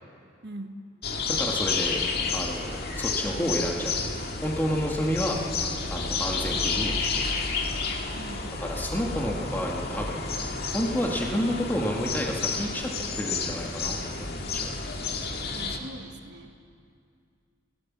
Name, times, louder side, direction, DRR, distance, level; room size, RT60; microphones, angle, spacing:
voice 1, 0.4-0.8 8.1-8.6 15.5-16.7, right 1 dB, 60° right, 6 dB, 1.5 m, -41 dB
sound 1, 1.0-15.8, left 4 dB, 55° left, 2.0 m, -30 dB
voice 2, 1.3-2.0 2.3-4.0 4.4-7.2 8.6-10.4 10.7-12.9 13.1-14.7, equal, 10° left, -1 dB, 1.8 m, -30 dB
25.0 x 19.0 x 7.4 m, 2.4 s
head